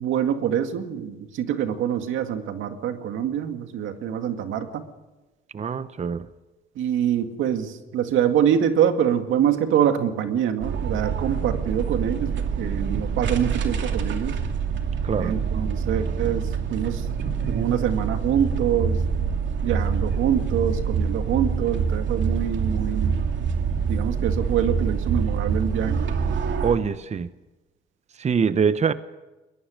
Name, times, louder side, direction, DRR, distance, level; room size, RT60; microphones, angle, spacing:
voice 1, 0.0-4.8 6.8-14.3 15.2-19.1 19.6-23.2 23.9-26.0, right 9 dB, 85° right, 7 dB, 2.1 m, -25 dB
voice 2, 5.5-6.3 15.0-15.4 26.6-27.3 28.2-28.9, right 6 dB, 35° right, 13 dB, 0.8 m, -24 dB
sound 1, 10.6-26.8, right 6 dB, 65° right, 2.7 m, -26 dB
22.0 x 21.0 x 6.4 m, 1.1 s
cardioid pair, 90°, 20 cm